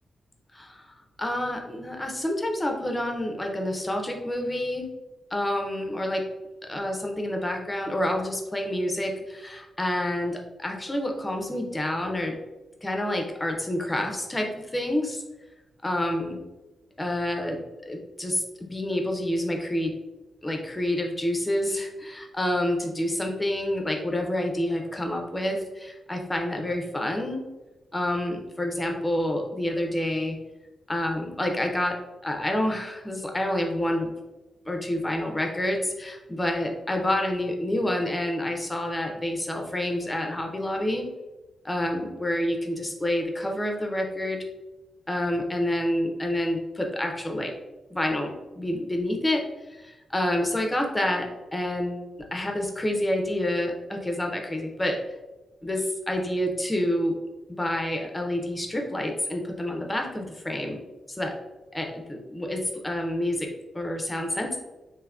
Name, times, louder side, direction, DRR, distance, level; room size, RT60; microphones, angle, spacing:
voice 1, 0.5-4.9 5.3-6.2 6.6-12.4 12.8-15.2 15.8-16.4 17.0-19.9 20.4-27.4 27.9-30.4 30.9-32.0 32.2-34.1 34.7-41.1 41.6-44.4 45.1-47.5 47.9-49.4 49.7-55.0 55.6-57.1 57.5-60.8 61.1-61.3 61.7-63.5 63.7-64.6, left 1 dB, 10° left, 3 dB, 0.4 m, -28 dB
3.5 x 2.5 x 2.3 m, 1.1 s
wide cardioid pair, 175°, 0 cm